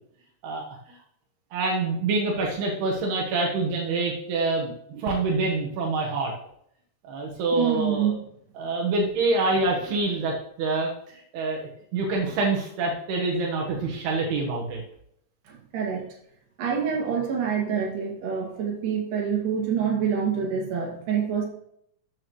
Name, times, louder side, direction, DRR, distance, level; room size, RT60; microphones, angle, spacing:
voice 1, 1.5-6.3 7.1-8.1 8.6-10.9 11.3-14.8, right 3 dB, 85° right, -1 dB, 3.4 m, -26 dB
voice 2, 7.5-8.2 15.5-16.0 16.6-21.4, right 7 dB, 60° right, -2 dB, 3.8 m, -26 dB
12.5 x 8.6 x 3.1 m, 0.71 s
omnidirectional pair, 4.5 m